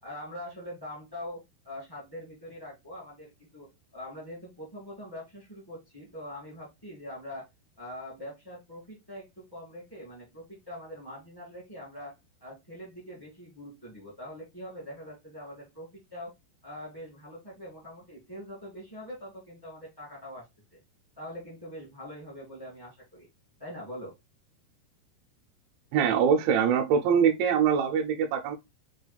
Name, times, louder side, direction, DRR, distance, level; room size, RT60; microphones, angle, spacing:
voice 1, 0.0-7.5 7.8-12.1 12.4-16.3 16.6-20.4 20.7-20.8 21.2-23.3 23.6-24.1, left 1 dB, 30° left, 0.4 m, -43 dB
voice 2, 25.9-28.5, right 7 dB, 85° right, 3.1 m, -23 dB
6.7 x 2.3 x 3.3 m
omnidirectional pair, 5.1 m